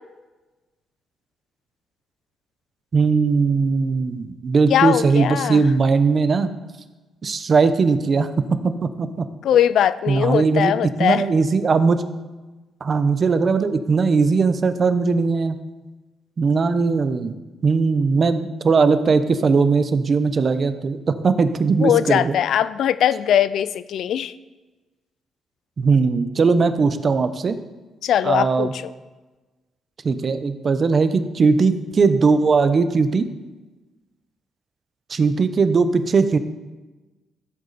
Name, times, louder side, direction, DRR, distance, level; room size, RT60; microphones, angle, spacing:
voice 1, 2.9-6.5 7.2-8.3 8.6-9.3 10.1-12.1 12.8-15.6 16.4-17.3 17.6-22.3 25.8-27.5 28.2-28.7 30.0-33.2 35.1-36.4, right 4 dB, 40° right, 11 dB, 0.8 m, -19 dB
voice 2, 4.7-5.7 9.4-11.2 21.8-24.3 28.0-28.9, left 10 dB, 70° left, 16 dB, 0.5 m, -20 dB
14.5 x 8.1 x 4.2 m, 1.2 s
cardioid pair, 90°, 0 cm